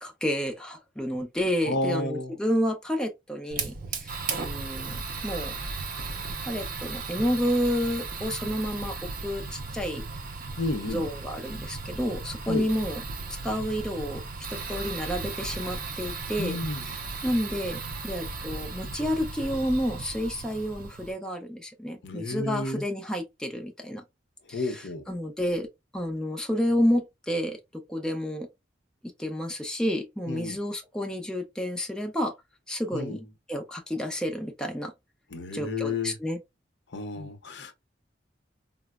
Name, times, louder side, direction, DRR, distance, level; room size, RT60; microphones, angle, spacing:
voice 1, 0.0-5.5 6.4-9.0 9.2-10.0 10.9-13.0 13.3-14.2 14.5-16.6 16.8-24.0 24.5-25.7 25.9-28.5 29.2-32.3 32.7-34.9 35.5-36.4 37.2-37.3, equal, 5° left, 0.4 m, -30 dB
voice 2, 1.6-2.4 10.6-11.1 12.5-12.7 16.4-16.9 22.0-22.8 24.5-25.0 30.3-30.6 32.9-33.2 35.3-36.2 36.9-37.7, left 2 dB, 65° left, 0.6 m, -31 dB
Fire, 3.5-21.1, right 4 dB, 50° right, 0.6 m, -36 dB
4.1 x 2.0 x 2.2 m
head